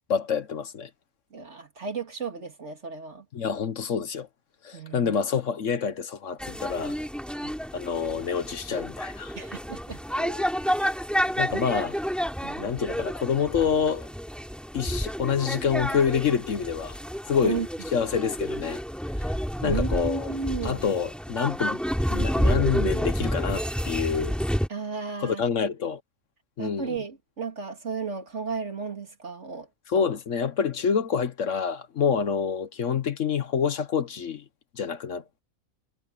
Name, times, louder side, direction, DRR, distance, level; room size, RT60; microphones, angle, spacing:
voice 1, 0.1-0.9 3.3-4.3 4.6-7.0 7.7-9.3 10.2-10.5 11.4-11.9 12.6-14.1 14.7-17.0 17.3-17.6 17.9-18.8 19.2-19.3 19.6-20.3 20.6-21.8 22.1-24.4 25.2-26.0 26.6-26.9 29.9-34.4 34.7-35.4, left 6 dB, 60° left, 1.3 m, -27 dB
voice 2, 1.3-3.3 4.7-5.2 7.3-7.5 9.4-10.0 11.5-11.6 12.4-12.7 17.4-17.7 19.6-20.8 24.7-25.4 26.6-29.7 29.9-30.1, right 5 dB, 55° right, 2.7 m, -34 dB
sound 1, 6.4-24.7, equal, ahead, 3.5 m, -30 dB
omnidirectional pair, 1.5 m